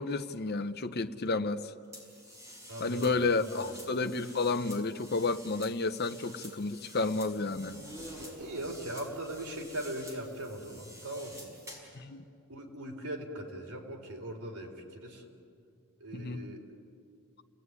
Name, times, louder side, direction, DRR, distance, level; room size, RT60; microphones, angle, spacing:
voice 1, 0.0-1.7 2.8-7.8 11.9-12.2 16.1-16.4, left 3 dB, 45° left, 10 dB, 0.9 m, -31 dB
sound 1, 1.9-12.0, equal, 15° right, 5.9 m, -49 dB
voice 2, 2.7-3.7 8.4-11.5 12.5-15.2 16.0-16.6, right 1 dB, 85° right, 1 dB, 4.3 m, -40 dB
sound 2, 7.5-11.3, right 1 dB, 65° right, 1.7 m, -55 dB
29.5 x 19.0 x 9.8 m, 2.4 s
head